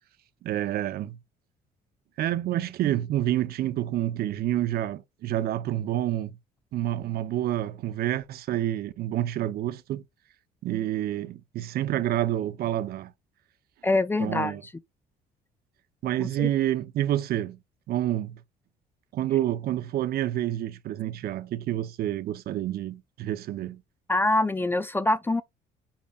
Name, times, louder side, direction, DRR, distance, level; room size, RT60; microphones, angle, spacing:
voice 1, 0.4-1.2 2.2-6.4 6.7-10.0 10.6-13.1 14.2-14.6 16.0-17.6 17.9-18.4 19.1-23.8, right 13 dB, 65° right, 0.9 m, -28 dB
voice 2, 13.8-14.6 16.2-16.5 24.1-25.4, left 2 dB, 10° left, 0.5 m, -25 dB
8.9 x 5.0 x 2.5 m
cardioid pair, 110°, 17 cm